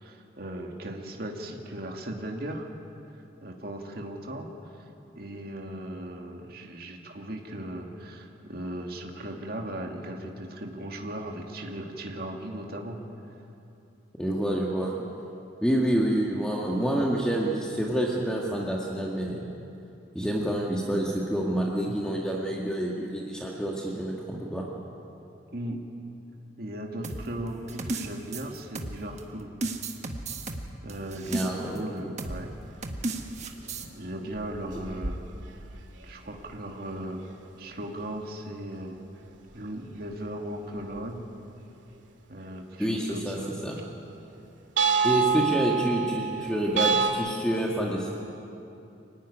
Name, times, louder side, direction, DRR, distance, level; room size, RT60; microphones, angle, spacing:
voice 1, 0.0-2.7 3.4-4.5 4.8-4.9 5.2-13.0 25.5-25.8 26.6-29.5 30.8-32.5 33.9-35.2 36.0-37.2 37.6-39.0 39.5-41.3 42.3-43.5, right 1 dB, 55° right, 1 dB, 2.2 m, -37 dB
voice 2, 14.2-15.0 15.6-19.5 20.1-24.7 31.3-32.1 42.8-43.4 43.6-43.8 45.0-48.1, right 1 dB, 5° left, -3 dB, 1.8 m, -28 dB
sound 1, 27.0-29.2 29.6-31.8 32.2-32.4 32.8-33.9, right 2 dB, 35° right, 1.6 m, -34 dB
sound 2, 32.2-32.5 32.7-32.8 33.2-33.7 34.3-36.5 36.8-37.0 37.3-37.4 39.5-39.6 40.3-40.4 40.8-41.0 44.8-47.1, right 5 dB, 80° right, 2.2 m, -27 dB
25.5 x 15.5 x 10.0 m, 2.8 s
head